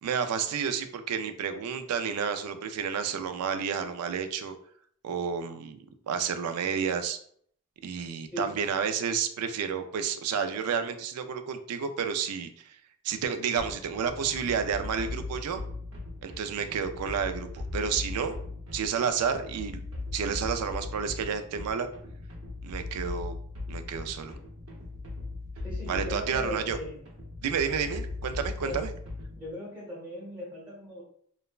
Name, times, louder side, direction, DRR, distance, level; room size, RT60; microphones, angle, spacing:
voice 1, 0.0-4.6 5.0-5.8 6.1-7.2 7.8-12.8 13.0-15.6 16.2-18.4 18.7-19.8 20.1-21.9 22.6-23.3 23.7-24.4 25.9-26.8 27.4-28.9, right 6 dB, 85° right, 8 dB, 0.3 m, -30 dB
sound 1, 13.6-29.5, left 3 dB, 65° right, 0.8 m, -39 dB
voice 2, 25.6-27.1 27.6-27.9 28.6-28.9 29.3-31.0, left 1 dB, 5° right, -6 dB, 0.8 m, -39 dB
3.2 x 2.0 x 2.3 m, 0.62 s
head